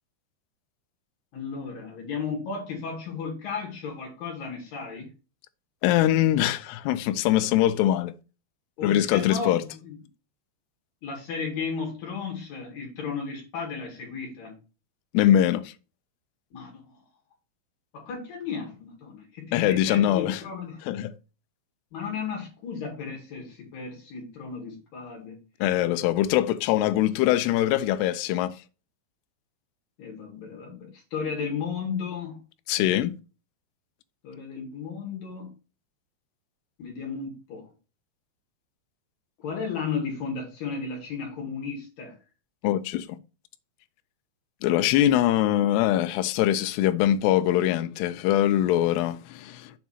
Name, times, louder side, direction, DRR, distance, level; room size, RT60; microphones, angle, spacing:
voice 1, 1.3-5.1 8.8-10.0 11.0-14.6 16.5-16.9 17.9-20.8 21.9-25.4 30.0-32.4 34.2-35.5 36.8-37.7 39.4-42.2, left 5 dB, 60° left, 3.2 m, -34 dB
voice 2, 5.8-8.1 8.8-9.6 15.1-15.7 19.5-20.4 20.9-21.1 25.6-28.6 32.7-33.1 42.6-43.1 44.6-49.7, left 12 dB, 80° left, 2.5 m, -23 dB
7.5 x 3.5 x 5.6 m
omnidirectional pair, 5.2 m